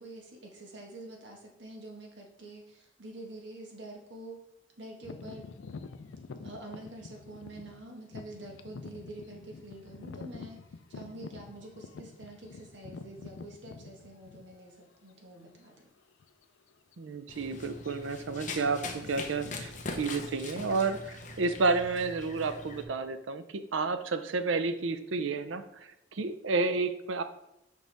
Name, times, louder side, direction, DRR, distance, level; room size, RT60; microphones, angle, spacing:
voice 1, 0.0-4.4 4.8-5.5 6.4-10.6 10.9-15.9, right 2 dB, 65° right, 1 dB, 1.4 m, -47 dB
sound 1, 5.0-14.8 15.4-15.6 16.2-16.4 16.7-16.9 17.6-18.2 18.4-21.8, left 4 dB, 80° left, 0.4 m, -47 dB
voice 2, 17.0-18.8 19.1-25.6 26.1-27.2, right 3 dB, 90° right, 10 dB, 0.6 m, -31 dB
Run, 17.3-22.8, left 2 dB, 40° left, 0.7 m, -41 dB
6.4 x 5.0 x 3.4 m, 0.84 s
head